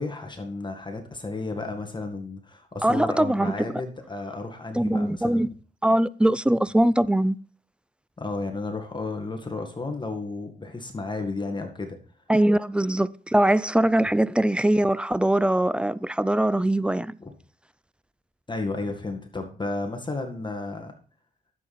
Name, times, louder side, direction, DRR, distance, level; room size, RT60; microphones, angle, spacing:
voice 1, 0.0-5.4 8.2-12.0 14.0-14.1 17.2-17.3 18.5-20.9, left 3 dB, 25° left, 1.9 m, -33 dB
voice 2, 2.8-3.7 4.7-5.5 5.8-7.4 12.3-17.2, right 1 dB, 5° right, 0.3 m, -22 dB
10.5 x 7.5 x 4.3 m
cardioid pair, 85°, 20 cm